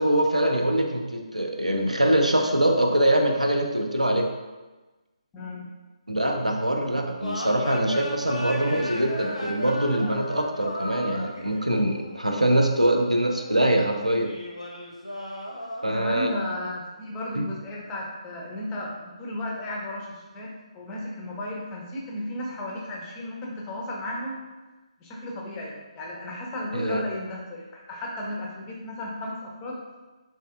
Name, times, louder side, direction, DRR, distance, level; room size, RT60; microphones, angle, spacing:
voice 1, 0.0-4.3 6.1-14.3 15.8-16.3 17.4-17.5 26.7-27.0, right 1 dB, 90° right, 3 dB, 0.4 m, -23 dB
voice 2, 5.3-5.7 15.9-24.4 25.0-29.8, left 1 dB, 15° left, -3 dB, 0.4 m, -34 dB
sound 1, 7.2-13.8 14.2-16.4, left 1 dB, 85° left, 0.6 m, -36 dB
3.2 x 2.7 x 2.3 m, 1.2 s
figure-of-eight pair, 145°, 4 cm